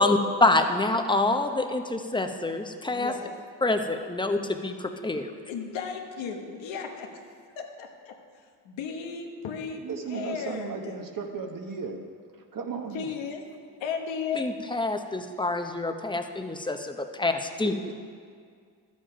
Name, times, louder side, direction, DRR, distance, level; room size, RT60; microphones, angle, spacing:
voice 1, 0.0-3.1 3.6-5.4 14.3-17.7, left 2 dB, 10° left, 6 dB, 0.8 m, -26 dB
voice 2, 2.9-3.3 5.5-7.2 7.6-8.1 8.6-11.0 12.9-13.4 13.8-14.4, left 6 dB, 85° left, 3 dB, 1.3 m, -35 dB
voice 3, 9.8-12.0 12.5-13.1 17.6-17.9, right 5 dB, 50° right, 4 dB, 1.3 m, -35 dB
12.0 x 7.8 x 5.1 m, 2.1 s
cardioid pair, 75°, 44 cm